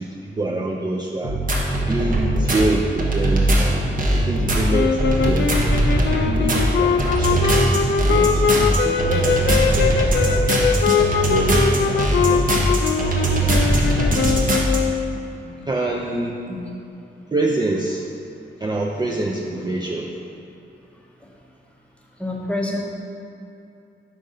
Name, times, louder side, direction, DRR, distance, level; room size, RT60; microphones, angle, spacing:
voice 1, 0.0-1.4 1.9-3.9 4.1-5.0 5.2-5.5 6.2-7.7 8.1-9.9 10.3-10.5 11.3-12.4 13.2-13.7 14.3-14.4 15.7-16.4 17.3-18.1 18.6-20.1, right 2 dB, 20° right, -1 dB, 0.4 m, -26 dB
sound 1, 1.2-14.8, right 1 dB, 45° right, 0.8 m, -20 dB
sound 2, 4.7-15.2, left 6 dB, 65° left, 0.4 m, -21 dB
voice 2, 13.6-14.0 15.4-15.5 16.5-16.6 22.2-22.8, left 2 dB, 5° left, -2 dB, 0.8 m, -29 dB
5.5 x 3.9 x 4.9 m, 2.8 s
wide cardioid pair, 120°, 20 cm